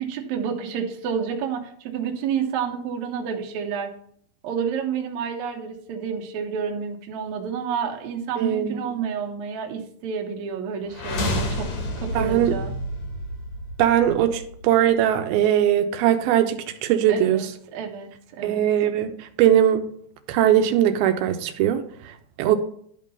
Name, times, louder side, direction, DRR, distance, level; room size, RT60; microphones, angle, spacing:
voice 1, 0.0-3.9 4.4-11.7 12.0-12.7 17.1-18.6, right 7 dB, 65° right, 2.0 m, -29 dB
voice 2, 8.4-8.8 12.2-12.5 13.8-17.5 18.4-19.9 20.3-21.8 22.4-22.6, right 10 dB, 85° right, 2.5 m, -20 dB
sound 1, 10.9-14.9, left 1 dB, 60° left, 2.1 m, -30 dB
11.0 x 3.7 x 5.4 m
omnidirectional pair, 4.3 m